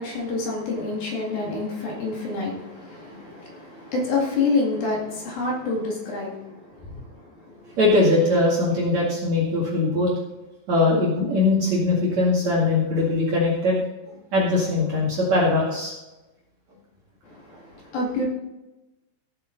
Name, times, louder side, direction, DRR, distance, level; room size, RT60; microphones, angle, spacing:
voice 1, 0.0-7.8 17.2-18.3, left 3 dB, 55° left, -3 dB, 3.5 m, -28 dB
voice 2, 7.8-10.1 10.7-13.8 14.1-15.9, left 2 dB, 45° right, -5 dB, 2.7 m, -21 dB
15.5 x 8.5 x 3.9 m, 1.0 s
omnidirectional pair, 5.5 m